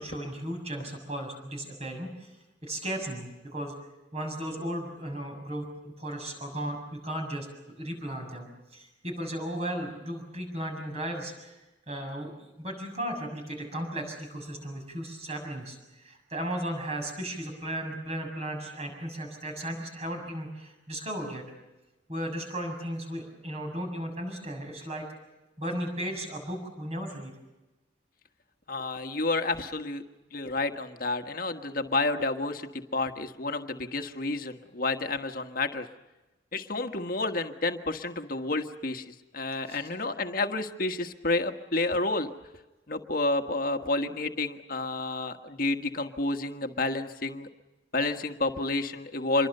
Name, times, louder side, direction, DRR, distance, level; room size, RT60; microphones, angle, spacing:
voice 1, 0.0-2.3 2.6-3.7 4.1-7.5 7.8-11.5 11.9-12.3 12.6-21.4 22.1-25.1 25.6-27.3 39.7-39.9, right 1 dB, 35° right, 3 dB, 6.9 m, -35 dB
voice 2, 28.7-30.0 30.3-35.9 36.5-42.3 42.9-47.5 47.9-49.5, left 2 dB, 50° left, 6 dB, 1.6 m, -30 dB
26.5 x 23.0 x 6.8 m, 1.1 s
head